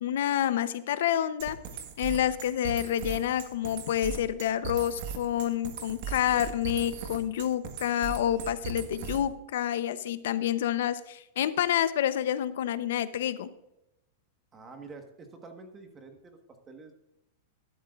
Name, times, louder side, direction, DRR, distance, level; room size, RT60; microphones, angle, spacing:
voice 1, 0.0-1.6 2.0-13.5, left 11 dB, 70° left, 13 dB, 0.8 m, -28 dB
sound 1, 1.4-9.4, right 6 dB, 50° right, 1.6 m, -38 dB
voice 2, 14.5-16.4 16.7-16.9, right 4 dB, 15° right, 5 dB, 1.5 m, -47 dB
12.5 x 12.0 x 2.5 m, 0.86 s
supercardioid pair, 160°, 0 cm